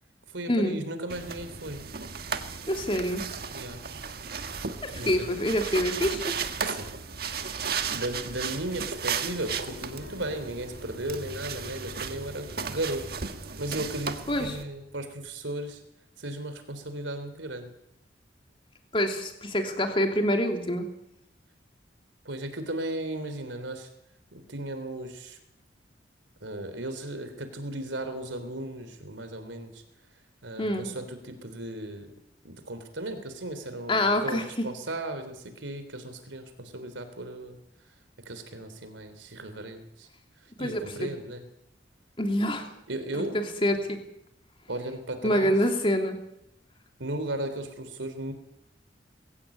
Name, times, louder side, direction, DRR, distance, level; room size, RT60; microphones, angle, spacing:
voice 1, 0.3-1.8 3.5-3.8 4.9-5.3 6.6-6.9 7.9-13.1 13.6-14.1 14.4-15.8 16.2-17.7 22.3-23.9 24.3-25.4 26.4-29.8 30.4-32.1 32.4-37.6 38.3-40.1 40.6-41.4 42.9-43.4 44.7-45.5 47.0-48.3, right 1 dB, 85° right, 9 dB, 3.6 m, -36 dB
sound 1, 1.1-14.6, right 6 dB, 55° right, 1.6 m, -35 dB
voice 2, 2.7-3.3 4.8-6.4 14.3-14.6 18.9-20.9 30.6-30.9 33.9-34.7 40.6-41.1 42.2-42.7 43.1-44.0 45.2-46.2, equal, 30° left, 5 dB, 3.0 m, -26 dB
sound 2, 9.2-15.4, left 2 dB, 90° left, 2.6 m, -46 dB
21.5 x 16.5 x 8.7 m, 0.81 s
head